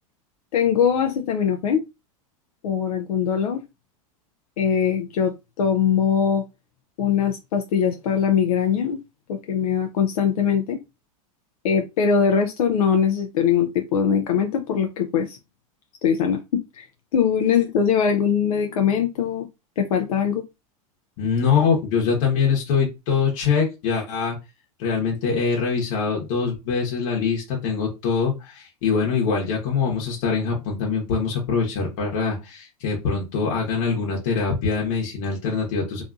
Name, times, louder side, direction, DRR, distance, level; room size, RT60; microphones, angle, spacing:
voice 1, 0.5-1.8 2.6-3.6 4.6-6.4 7.0-9.0 9.3-10.8 11.6-15.4 16.0-16.9 17.1-19.5 19.8-20.4, left 7 dB, 85° left, 4 dB, 0.4 m, -21 dB
voice 2, 21.2-24.4 24.8-36.0, left 5 dB, 65° left, -2 dB, 1.0 m, -23 dB
2.6 x 2.4 x 2.4 m, 0.25 s
hypercardioid pair, 110°, 18 cm